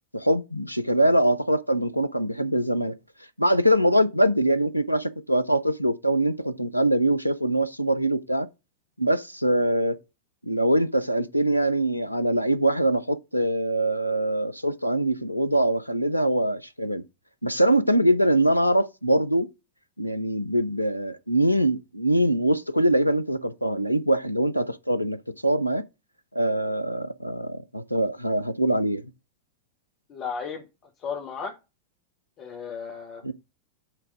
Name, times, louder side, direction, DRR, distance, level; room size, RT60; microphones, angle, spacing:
voice 1, 0.1-2.9 3.4-8.5 9.0-10.0 10.4-17.0 17.4-19.5 20.0-25.2 25.4-25.8 26.3-29.0 33.2-33.3, right 1 dB, 90° left, 0.5 m, -23 dB
voice 2, 30.1-30.6 31.0-31.5 32.4-33.2, left 6 dB, 35° left, 1.3 m, -34 dB
9.0 x 3.4 x 4.8 m
figure-of-eight pair, 90°, 0 cm